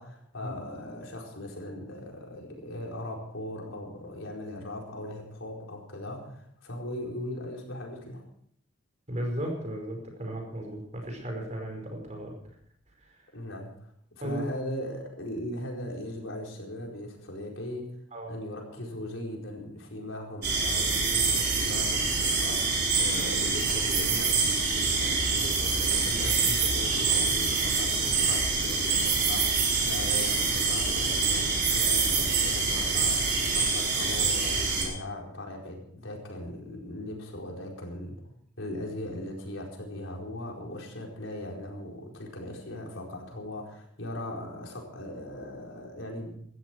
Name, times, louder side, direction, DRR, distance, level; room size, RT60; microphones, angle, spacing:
voice 1, 0.0-8.2 13.3-13.7 14.1-17.9 18.3-38.2 38.6-46.4, left 1 dB, 75° left, 0 dB, 4.5 m, -39 dB
voice 2, 9.1-12.4 14.2-14.4 18.1-18.3, right 1 dB, 35° right, 2 dB, 5.2 m, -35 dB
sound 1, 20.4-34.8, right 4 dB, 55° right, 5.0 m, -26 dB
18.0 x 13.5 x 4.6 m, 0.66 s
head